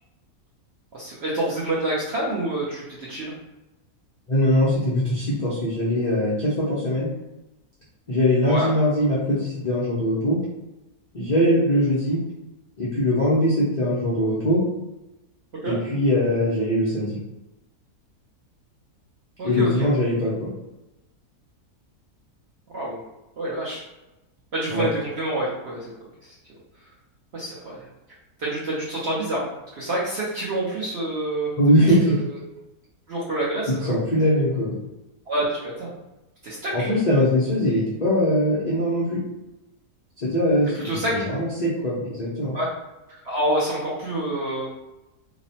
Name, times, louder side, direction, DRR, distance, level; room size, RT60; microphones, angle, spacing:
voice 1, 0.9-3.3 8.4-8.7 15.6-15.8 19.4-19.9 22.7-23.0 23.4-23.8 24.5-25.9 26.2-26.3 27.3-27.9 28.4-29.5 29.7-32.4 33.1-34.0 35.3-35.9 36.4-36.9 40.8-41.2 42.5-42.7 43.1-44.7, right 1 dB, 60° right, -6 dB, 0.7 m, -27 dB
voice 2, 4.3-7.1 8.1-10.4 11.1-12.2 12.8-14.6 15.6-17.2 19.4-20.5 24.7-24.9 31.6-32.1 33.8-34.7 36.7-39.2 40.2-42.5, equal, 70° left, -8 dB, 0.4 m, -21 dB
2.9 x 2.0 x 2.7 m, 1.0 s
omnidirectional pair, 1.7 m